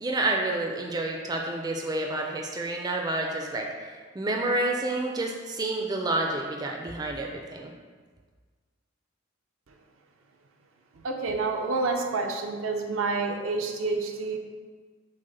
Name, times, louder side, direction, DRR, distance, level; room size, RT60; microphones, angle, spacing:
voice 1, 0.0-7.7, right 2 dB, 20° right, 1 dB, 0.4 m, -29 dB
voice 2, 10.9-14.4, right 3 dB, 90° right, 3 dB, 0.5 m, -28 dB
6.2 x 2.1 x 3.9 m, 1.5 s
head